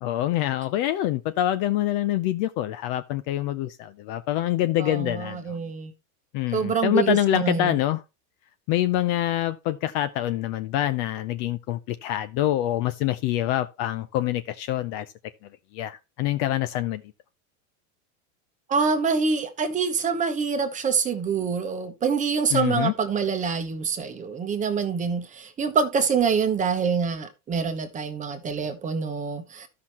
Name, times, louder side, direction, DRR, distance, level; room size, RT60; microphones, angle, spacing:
voice 1, 0.0-5.6 6.3-8.0 8.7-15.1 15.7-17.0 22.5-22.9, left 13 dB, 40° left, 0.5 m, -25 dB
voice 2, 4.8-5.9 6.5-7.8 18.7-29.7, right 5 dB, 15° right, 1.0 m, -26 dB
13.0 x 5.8 x 2.9 m
supercardioid pair, 150°, 42 cm